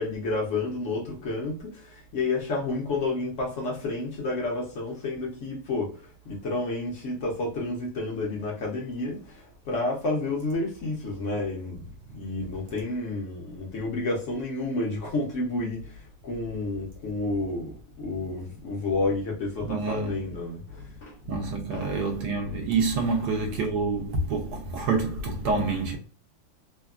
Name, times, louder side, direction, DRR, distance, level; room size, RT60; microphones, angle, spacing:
voice 1, 0.0-5.9 6.3-11.8 12.1-15.9 16.2-21.1 21.7-21.9, left 2 dB, 60° left, 0.8 m, -30 dB
voice 2, 19.6-20.2 21.3-26.0, right 3 dB, 70° right, 1.1 m, -27 dB
3.3 x 2.2 x 2.3 m
omnidirectional pair, 2.1 m